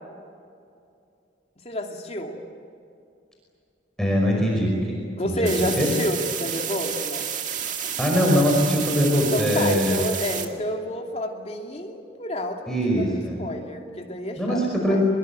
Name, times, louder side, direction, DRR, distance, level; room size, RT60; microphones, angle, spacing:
voice 1, 1.6-2.4 5.2-7.3 9.3-15.0, left 1 dB, 35° left, 2 dB, 2.8 m, -30 dB
voice 2, 4.0-5.0 5.2-5.4 5.8-5.9 8.0-10.0 12.7-13.4 14.4-15.1, equal, 5° left, -2 dB, 5.2 m, -22 dB
sound 1, 5.5-10.5, right 8 dB, 40° right, 2.0 m, -30 dB
24.5 x 22.0 x 9.0 m, 2.4 s
head